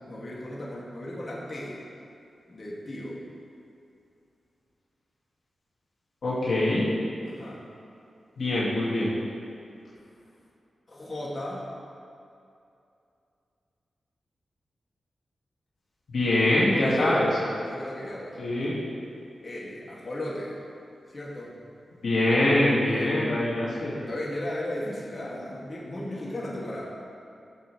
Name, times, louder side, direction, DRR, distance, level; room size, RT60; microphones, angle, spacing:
voice 1, 0.1-1.8 2.5-3.2 7.2-7.6 10.9-11.7 16.7-17.2 17.6-18.7 19.4-20.6 21.1-21.5 22.8-23.3 24.1-26.9, left 1 dB, 45° left, -6 dB, 2.6 m, -35 dB
voice 2, 6.2-6.9 8.4-9.1 16.1-17.3 18.4-18.7 22.0-24.0, left 1 dB, 70° left, -8 dB, 2.4 m, -24 dB
14.5 x 7.1 x 3.4 m, 2.6 s
cardioid pair, 45°, 0 cm